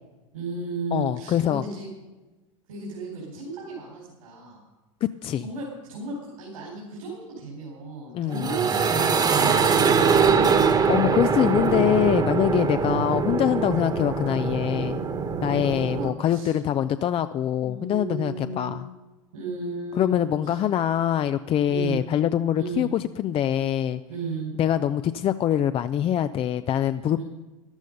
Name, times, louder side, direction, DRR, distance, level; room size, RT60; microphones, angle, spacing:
voice 1, 0.3-1.9 2.7-4.6 5.4-10.2 12.7-13.0 15.9-16.6 17.6-18.9 19.3-20.6 21.7-22.0 22.6-22.9 24.1-24.5 27.2-27.3, right 3 dB, 80° right, -3 dB, 4.5 m, -34 dB
voice 2, 0.9-1.6 5.0-5.5 8.1-8.5 10.8-15.0 15.4-18.9 20.0-24.0 24.6-27.2, left 11 dB, 35° left, 12 dB, 0.5 m, -24 dB
sound 1, 8.3-16.1, right 5 dB, 25° right, 1.3 m, -23 dB
13.5 x 12.0 x 5.3 m, 1.2 s
hypercardioid pair, 95°, 17 cm